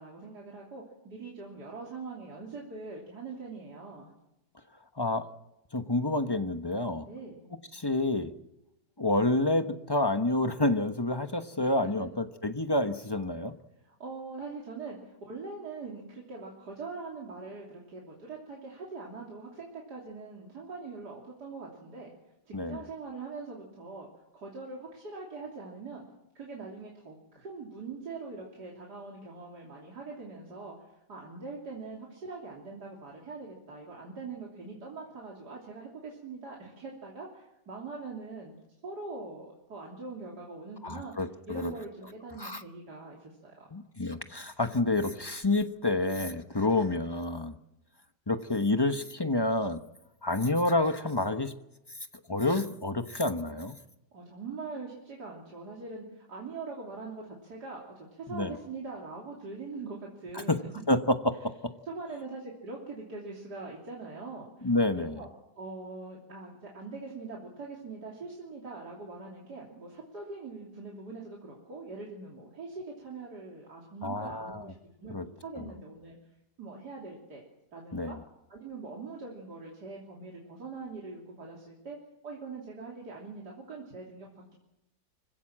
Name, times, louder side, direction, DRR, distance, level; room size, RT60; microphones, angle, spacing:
voice 1, 0.0-4.1 7.1-7.5 11.6-11.9 13.8-22.1 22.5-24.1 24.3-26.1 26.4-38.6 38.8-41.1 41.5-43.7 54.1-60.7 61.9-65.3 65.6-74.8 75.0-76.2 76.6-77.4 77.7-78.2 78.5-82.0 82.2-84.5, right 3 dB, 90° right, -2 dB, 3.7 m, -42 dB
voice 2, 5.0-5.3 5.7-7.0 7.7-8.3 9.0-13.5 22.5-22.8 40.8-41.7 42.4-42.6 43.7-47.5 48.3-49.8 50.2-51.5 52.3-53.8 58.3-58.5 60.3-60.6 60.9-61.7 64.6-65.2 74.0-74.6 75.1-75.2 77.9-78.2, left 2 dB, 20° left, 8 dB, 1.0 m, -28 dB
25.5 x 16.5 x 7.6 m, 0.91 s
omnidirectional pair, 1.7 m